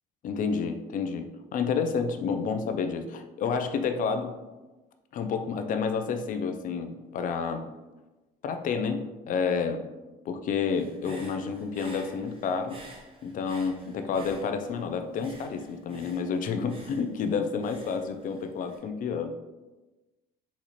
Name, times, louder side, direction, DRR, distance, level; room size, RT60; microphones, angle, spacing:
voice 1, 0.2-4.3 5.1-7.6 8.4-9.8 10.3-12.8 13.2-19.3, left 5 dB, 50° left, 7 dB, 0.4 m, -30 dB
Human voice / Breathing, 10.7-14.8 15.2-18.8, right 2 dB, 30° right, 0.7 m, -50 dB
4.1 x 2.4 x 2.9 m, 1.1 s
cardioid pair, 110°, 17 cm